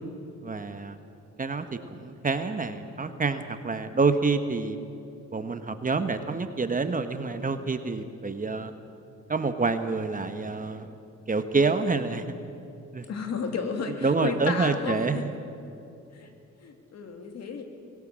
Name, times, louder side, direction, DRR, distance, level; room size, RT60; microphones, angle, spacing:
voice 1, 0.4-1.0 1.4-4.8 5.3-8.7 9.3-10.9 11.3-12.3 12.9-13.0 14.0-15.3, right 4 dB, 25° right, 9 dB, 1.2 m, -27 dB
voice 2, 13.1-15.2 16.1-16.3 16.6-17.6, left 5 dB, 60° left, 5 dB, 2.8 m, -32 dB
22.5 x 17.0 x 7.6 m, 2.6 s
cardioid pair, 90°, 30 cm